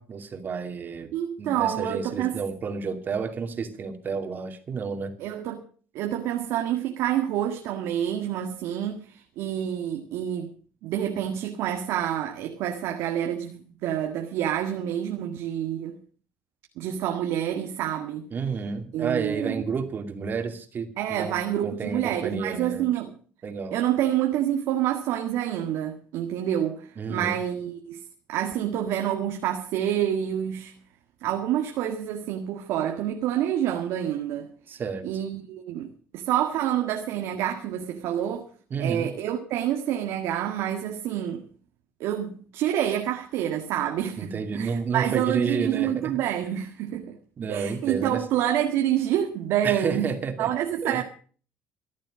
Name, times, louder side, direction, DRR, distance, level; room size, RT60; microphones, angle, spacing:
voice 1, 0.0-5.1 18.3-22.9 23.4-23.7 27.0-27.4 34.7-35.1 38.7-39.1 44.2-46.1 47.4-48.2 49.6-50.5 50.8-51.0, right 5 dB, 45° right, 2.6 m, -31 dB
voice 2, 1.1-2.4 5.2-5.6 5.9-10.5 10.8-16.0 16.8-18.3 18.9-19.6 21.0-23.2 23.7-28.0 28.3-30.7 31.2-34.5 35.0-38.5 38.8-41.5 42.0-47.2 47.5-51.0, right 11 dB, 75° right, 1.8 m, -28 dB
14.5 x 10.5 x 6.2 m
supercardioid pair, 90°, 5 cm